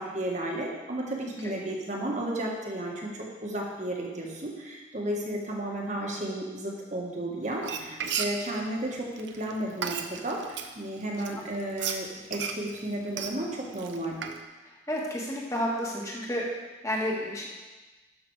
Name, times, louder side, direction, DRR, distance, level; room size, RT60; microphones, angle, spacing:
voice 1, 0.0-14.2, right 1 dB, 40° right, -1 dB, 1.7 m, -33 dB
Frying (food), 7.5-10.7 11.2-14.4, right 7 dB, 65° right, 0.7 m, -34 dB
voice 2, 14.9-16.5 16.8-17.5, equal, 15° left, -3 dB, 1.7 m, -30 dB
12.0 x 6.0 x 4.8 m, 1.2 s
head